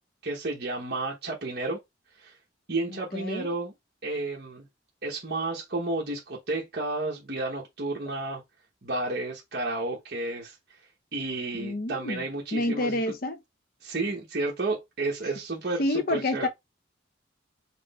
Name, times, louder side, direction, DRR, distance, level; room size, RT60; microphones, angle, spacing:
voice 1, 0.2-1.8 2.2-2.3 2.7-3.7 4.0-4.7 5.0-8.4 8.8-10.8 11.1-13.0 13.8-16.5, right 2 dB, 55° right, 1.1 m, -31 dB
voice 2, 2.9-3.5 11.6-12.2 12.5-13.4 15.8-16.5, left 2 dB, 50° left, 0.6 m, -29 dB
5.9 x 2.1 x 4.2 m
head